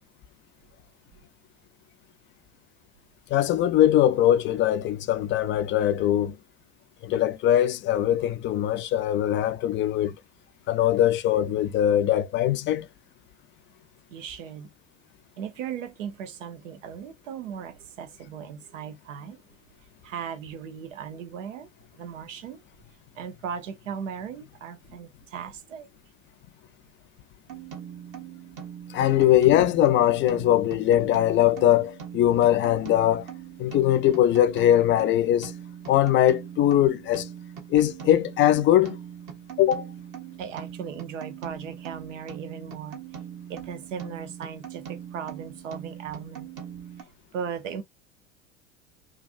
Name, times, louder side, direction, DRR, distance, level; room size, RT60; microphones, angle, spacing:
voice 1, 3.3-6.4 7.0-10.1 10.7-12.9 28.9-33.2 33.6-35.5 35.9-37.3 37.7-39.0 39.6-39.9, left 12 dB, 35° left, 0.4 m, -21 dB
voice 2, 14.1-14.7 15.4-19.4 20.0-21.7 22.0-22.6 23.1-25.9 40.4-43.0 43.5-46.5 47.3-47.8, right 7 dB, 75° right, 0.8 m, -37 dB
sound 1, 27.5-47.0, right 9 dB, 50° right, 1.5 m, -41 dB
3.2 x 2.5 x 2.5 m
hypercardioid pair, 80°, 37 cm